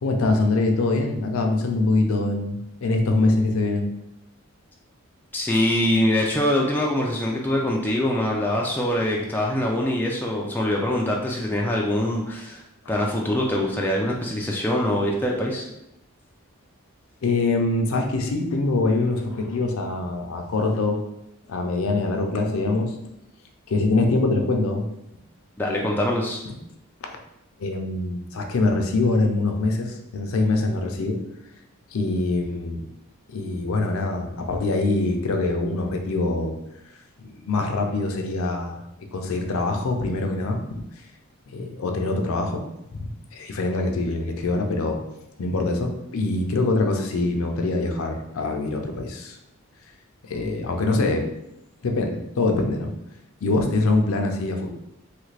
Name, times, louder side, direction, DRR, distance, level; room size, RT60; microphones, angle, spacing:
voice 1, 0.0-3.9 17.2-21.0 21.5-23.0 23.7-24.8 26.5-26.6 27.1-27.2 27.6-31.2 31.9-32.8 33.3-36.5 37.2-40.8 41.5-42.6 42.9-45.0 45.4-49.4 50.2-51.3 51.8-52.9 53.4-54.7, left 2 dB, 70° left, 3 dB, 0.5 m, -24 dB
voice 2, 5.3-12.6 12.9-15.6 25.6-26.4, left 1 dB, 10° left, -2 dB, 0.3 m, -23 dB
3.1 x 2.5 x 3.2 m, 0.85 s
head